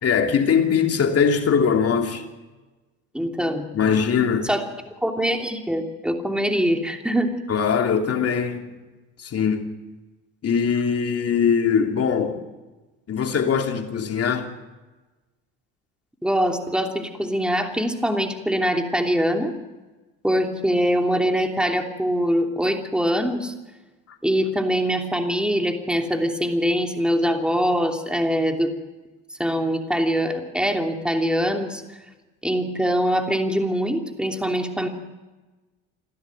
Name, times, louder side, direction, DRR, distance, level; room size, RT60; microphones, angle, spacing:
voice 1, 0.0-2.2 3.7-4.5 7.5-8.7 9.2-9.7 10.4-12.4 13.1-14.5, left 6 dB, 45° left, 3.0 m, -21 dB
voice 2, 3.1-3.7 4.4-4.6 5.0-7.3 16.2-19.5 20.2-23.5 24.2-28.7 29.4-31.8 32.4-34.9, equal, 5° right, 3.0 m, -23 dB
28.0 x 12.5 x 9.2 m
supercardioid pair, 80°, 34 cm